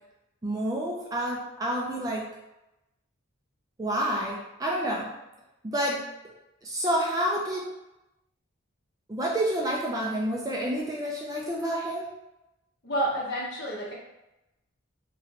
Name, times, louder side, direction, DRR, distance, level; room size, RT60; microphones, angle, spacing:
voice 1, 0.4-2.2 3.8-5.1 5.6-6.0 6.6-7.7 9.1-12.1, right 1 dB, 15° right, -3 dB, 0.4 m, -29 dB
voice 2, 12.8-13.9, right 1 dB, 55° left, -5 dB, 0.9 m, -29 dB
3.1 x 2.5 x 2.8 m, 0.93 s
head